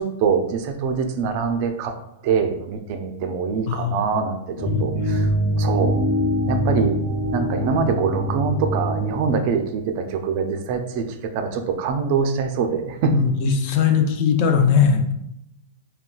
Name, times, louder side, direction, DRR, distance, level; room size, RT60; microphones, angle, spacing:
voice 1, 0.0-1.9 2.2-4.4 4.8-5.2 5.6-5.9 6.5-7.0 7.3-11.0 11.3-13.2, right 5 dB, 45° right, 6 dB, 0.3 m, -23 dB
voice 2, 3.7-4.2 4.7-5.2 13.1-15.1, left 6 dB, 45° left, 6 dB, 0.4 m, -20 dB
sound 1, 4.6-9.6, equal, 75° left, 1.0 m, -23 dB
3.7 x 2.2 x 2.3 m, 0.79 s
supercardioid pair, 155°, 0 cm